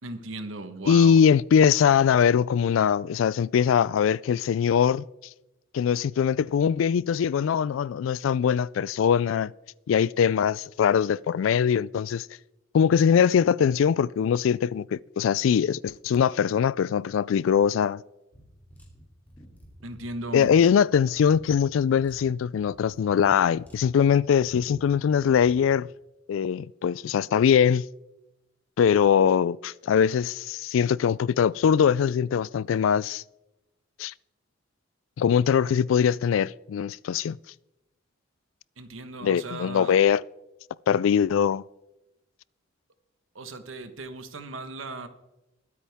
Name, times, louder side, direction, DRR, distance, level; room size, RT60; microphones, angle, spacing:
voice 1, 0.0-1.2 19.8-20.5 38.8-40.0 43.3-45.1, right 2 dB, 90° right, 1.3 m, -37 dB
voice 2, 0.9-5.0 5.7-9.5 9.9-12.3 12.7-18.0 20.3-25.9 26.3-27.9 28.8-33.2 34.0-34.1 35.2-37.4 39.2-40.2 40.9-41.6, left 7 dB, 80° left, 0.3 m, -22 dB
sound 1, 18.3-25.7, equal, 10° left, 2.6 m, -51 dB
22.0 x 8.5 x 3.5 m
head